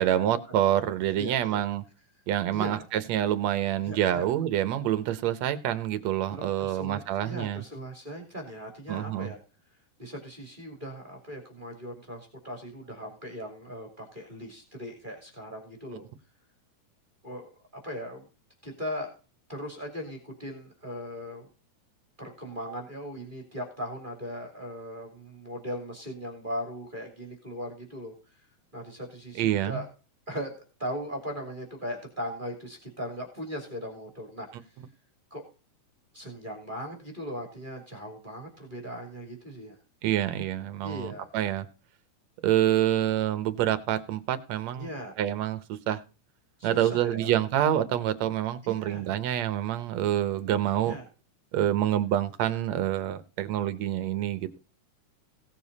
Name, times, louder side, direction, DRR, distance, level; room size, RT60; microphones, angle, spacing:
voice 1, 0.0-1.8 2.3-7.6 8.9-9.3 29.4-29.8 40.0-41.7 42.4-44.9 45.2-46.0 46.6-50.9 51.5-54.6, right 12 dB, 65° right, 12 dB, 2.0 m, -27 dB
voice 2, 1.2-1.6 2.5-2.8 3.8-4.2 6.3-9.4 10.0-16.0 17.2-17.5 17.8-18.3 18.6-19.1 19.5-21.5 22.2-28.1 28.7-29.9 30.3-34.5 35.3-35.4 36.1-39.8 40.8-41.3 42.7-42.8 44.8-45.1 46.6-47.4 48.6-49.1 50.8-51.1, equal, 15° right, 1 dB, 2.8 m, -38 dB
17.5 x 7.1 x 4.1 m, 0.34 s
omnidirectional pair, 3.7 m